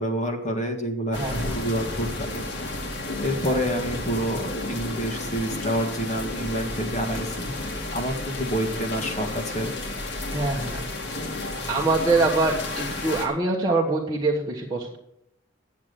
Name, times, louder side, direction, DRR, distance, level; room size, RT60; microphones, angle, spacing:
voice 1, 0.0-2.4 3.2-7.5 7.9-9.8, equal, 35° left, 3 dB, 1.6 m, -28 dB
sound 1, 1.1-13.3, left 2 dB, 60° left, 1.9 m, -32 dB
voice 2, 1.1-1.5 3.4-3.8 10.3-10.9 11.7-15.0, right 3 dB, 20° right, -4 dB, 1.2 m, -24 dB
9.4 x 7.5 x 6.8 m, 0.77 s
head